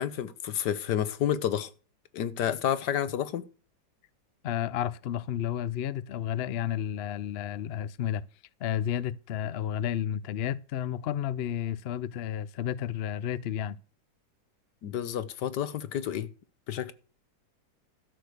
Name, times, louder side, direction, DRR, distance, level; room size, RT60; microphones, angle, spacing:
voice 1, 0.0-1.7 2.1-3.5 14.8-16.3 16.7-16.9, left 10 dB, 75° left, 1.5 m, -30 dB
voice 2, 4.4-8.2 8.6-13.8, left 10 dB, 90° left, 0.5 m, -31 dB
13.0 x 6.5 x 6.6 m
omnidirectional pair, 1.9 m